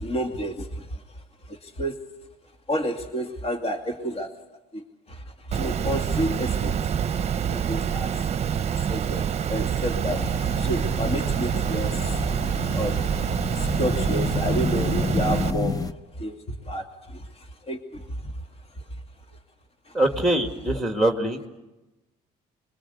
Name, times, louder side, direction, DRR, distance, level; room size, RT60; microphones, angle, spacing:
voice 1, 0.0-2.0 2.7-4.3 4.7-6.7 7.2-8.2 8.8-12.3 12.6-13.1 13.6-18.3 19.9-20.0, equal, 35° left, 4 dB, 2.5 m, -31 dB
Water, 5.5-15.5, right 8 dB, 40° right, 0.9 m, -26 dB
sound 1, 10.0-15.9, left 4 dB, 20° left, 0.9 m, -30 dB
voice 2, 19.9-21.5, right 1 dB, ahead, 4 dB, 2.2 m, -23 dB
26.0 x 22.5 x 8.1 m, 1.0 s
cardioid pair, 110°, 17 cm